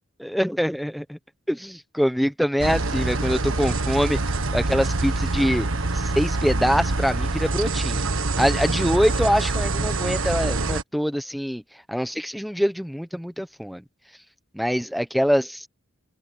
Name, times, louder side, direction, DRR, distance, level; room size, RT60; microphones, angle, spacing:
voice 1, 0.2-1.2 1.5-4.2 4.5-5.7 5.9-8.0 8.4-11.6 11.9-13.8 14.5-15.7, equal, ahead, 1.1 m, -24 dB
sound 1, 2.6-10.8, right 2 dB, 70° right, 1.5 m, -25 dB
open air
head